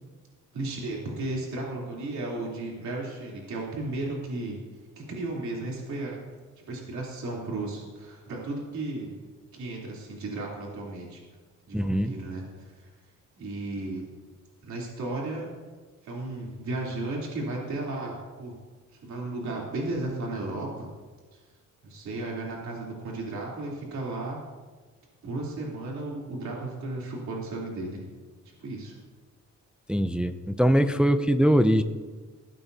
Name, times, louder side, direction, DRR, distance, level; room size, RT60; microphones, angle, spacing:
voice 1, 0.5-4.6 5.0-6.2 6.6-9.1 9.5-11.2 11.7-12.9 13.4-14.1 14.6-15.5 16.0-18.5 19.0-20.9 21.3-21.4 21.8-24.4 25.2-28.0 28.6-29.0, right 2 dB, 65° right, -4 dB, 3.5 m, -34 dB
voice 2, 11.7-12.1 29.9-31.8, equal, 5° right, 9 dB, 0.4 m, -22 dB
20.0 x 16.0 x 2.8 m, 1.4 s
wide cardioid pair, 160°, 31 cm